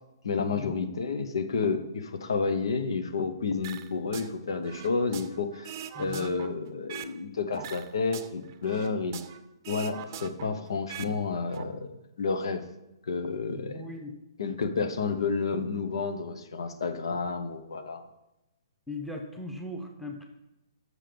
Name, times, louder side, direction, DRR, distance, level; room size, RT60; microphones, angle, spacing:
voice 1, 0.2-9.2 9.7-12.6 13.1-13.8 14.4-18.1, left 4 dB, 75° left, 8 dB, 0.9 m, -30 dB
sound 1, 3.6-4.3 4.6-7.2 7.5-9.4 9.6-11.1 11.4-11.6, right 10 dB, 40° right, 0.6 m, -42 dB
voice 2, 5.9-6.3 13.5-14.1 18.9-20.2, left 2 dB, ahead, 2 dB, 0.9 m, -39 dB
7.5 x 6.4 x 5.1 m, 0.94 s
hypercardioid pair, 150°, 3 cm